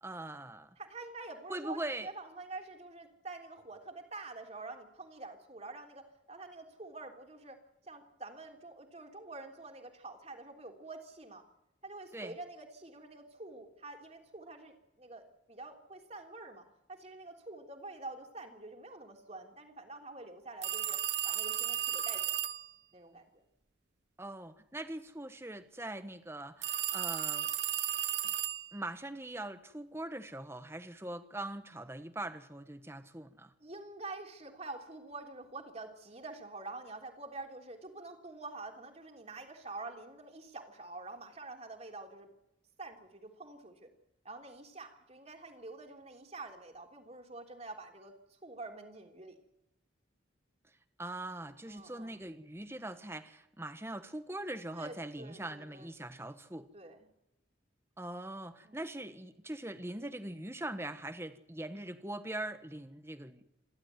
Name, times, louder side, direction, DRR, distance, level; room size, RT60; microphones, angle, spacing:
voice 1, 0.0-0.8 1.5-2.1 12.1-12.4 24.2-27.5 28.2-28.3 28.7-33.5 51.0-56.7 58.0-63.4, right 1 dB, 15° right, 10 dB, 1.3 m, -42 dB
voice 2, 0.8-11.5 11.8-22.2 22.9-23.4 33.6-42.3 42.8-43.9 44.2-49.4 51.7-52.2 54.7-55.9 56.7-57.1 58.6-58.8, right 2 dB, 35° right, 3 dB, 3.4 m, -47 dB
sound 1, 20.6-22.7 26.6-28.8, right 11 dB, 60° right, 1.0 m, -34 dB
28.0 x 12.5 x 9.4 m, 0.91 s
head